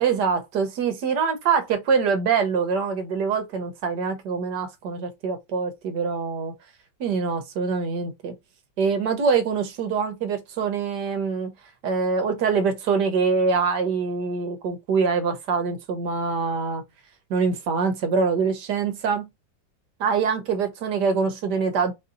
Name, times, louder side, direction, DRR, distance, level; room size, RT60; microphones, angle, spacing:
voice 1, 0.0-6.5 7.0-8.3 8.8-11.5 11.8-16.8 17.3-19.3 20.0-21.9, right 5 dB, 70° right, 1.4 m, -24 dB
4.3 x 2.7 x 3.8 m
omnidirectional pair, 2.0 m